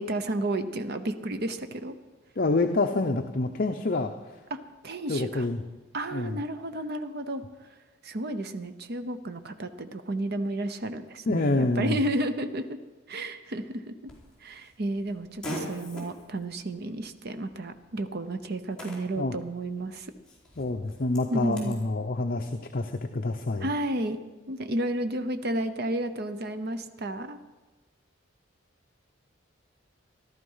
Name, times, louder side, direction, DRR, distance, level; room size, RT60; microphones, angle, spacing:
voice 1, 0.0-2.0 4.5-4.6 4.8-5.5 5.9-7.4 8.0-12.8 13.1-14.1 14.4-20.1 21.3-21.8 23.6-24.2 24.5-27.4, right 1 dB, 50° right, 9 dB, 0.8 m, -32 dB
voice 2, 2.4-4.1 5.1-5.6 6.1-6.4 11.3-12.0 19.2-19.4 20.6-23.7, left 2 dB, 45° left, 5 dB, 0.7 m, -27 dB
Fart, 14.1-21.8, equal, 5° left, 4.4 m, -44 dB
14.5 x 13.0 x 5.6 m, 1.2 s
head